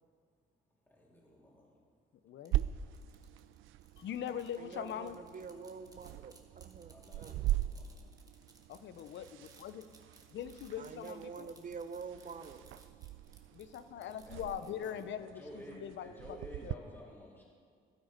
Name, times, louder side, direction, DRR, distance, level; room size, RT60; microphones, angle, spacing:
voice 1, 0.9-1.7 6.9-7.9 13.9-17.4, equal, 10° left, -5 dB, 3.4 m, -52 dB
voice 2, 2.2-2.6 4.0-5.2 8.7-9.9 10.3-11.5 13.5-16.4 16.6-16.8, left 9 dB, 65° left, 13 dB, 0.7 m, -42 dB
sound 1, 2.4-15.0, right 2 dB, 20° right, 1.7 m, -62 dB
sound 2, 2.5-16.7, right 14 dB, 85° right, 0.4 m, -41 dB
voice 3, 4.6-7.4 10.8-12.6, right 5 dB, 40° right, 10 dB, 0.9 m, -46 dB
13.5 x 12.0 x 5.2 m, 2.1 s
cardioid pair, 90°, 20 cm